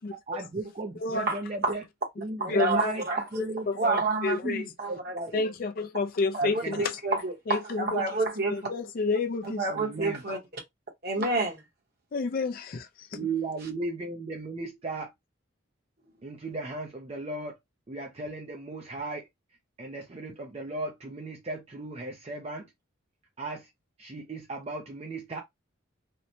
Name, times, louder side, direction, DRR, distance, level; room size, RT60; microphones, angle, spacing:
voice 1, 0.3-1.8 2.2-3.0 3.3-4.0 4.4-5.3 6.4-6.8 9.7-10.2 13.1-15.1 16.2-17.6 17.9-19.3 19.8-22.7 23.4-23.7 24.0-25.4, right 3 dB, 30° right, 0.4 m, -36 dB
voice 2, 0.9-1.3 2.5-2.9 3.4-3.8 4.2-4.7 5.3-7.0 7.5-8.2 8.5-9.7 11.2-11.3 12.1-13.3, left 3 dB, 45° left, 0.4 m, -30 dB
voice 3, 2.4-3.2 3.8-4.4 4.8-5.4 6.3-8.6 9.6-10.6 11.0-11.6, right 3 dB, 50° right, 1.0 m, -29 dB
2.9 x 2.1 x 2.6 m
head